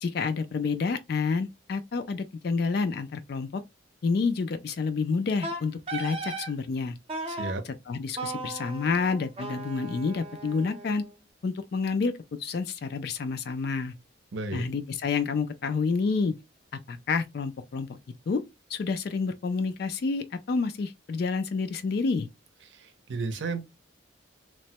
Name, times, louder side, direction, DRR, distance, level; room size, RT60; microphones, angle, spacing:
voice 1, 0.0-3.6 4.0-6.9 7.6-11.0 11.4-12.1 12.4-13.9 14.5-16.3 16.9-18.0 18.3-18.4 18.7-22.3, left 4 dB, 50° left, 0.3 m, -29 dB
Wind instrument woodwind instrument, 5.4-6.5 7.1-7.5 8.2-11.2, right 2 dB, 30° right, 0.5 m, -37 dB
voice 2, 7.3-7.6 14.3-14.7 22.7-23.6, right 3 dB, 65° right, 0.6 m, -33 dB
3.0 x 2.1 x 2.7 m
head